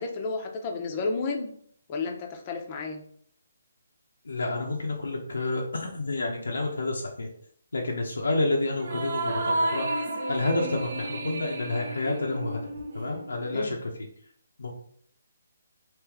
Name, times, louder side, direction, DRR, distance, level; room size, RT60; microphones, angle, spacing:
voice 1, 0.0-1.5 1.9-3.0 13.5-13.8, left 4 dB, 30° left, 3 dB, 0.6 m, -31 dB
voice 2, 4.2-7.3 7.7-12.6 12.9-13.9 14.6-14.7, left 2 dB, 90° left, -1 dB, 0.7 m, -29 dB
sound 1, 8.8-13.5, right 2 dB, 55° right, 0.5 m, -32 dB
3.2 x 3.0 x 3.5 m, 0.63 s
hypercardioid pair, 160°, 0 cm